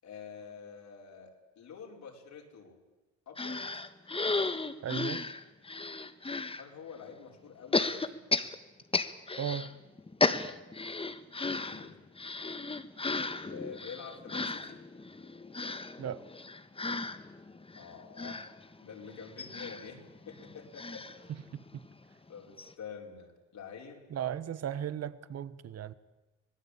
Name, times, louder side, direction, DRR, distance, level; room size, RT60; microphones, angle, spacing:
voice 1, 0.0-2.8 3.3-3.8 6.6-8.2 11.4-12.0 13.5-14.8 17.7-18.4 18.8-21.1 22.3-24.1, left 6 dB, 65° left, 1 dB, 5.6 m, -47 dB
sound 1, 3.4-6.6 7.7-9.7 10.0-21.9 22.3-22.4 22.6-22.7, left 3 dB, 20° left, 1.5 m, -35 dB
voice 2, 4.8-5.3 9.4-9.7 16.0-16.2 24.1-25.9, right 9 dB, 55° right, 16 dB, 1.3 m, -36 dB
25.5 x 18.5 x 8.7 m, 1.1 s
cardioid pair, 90°, 30 cm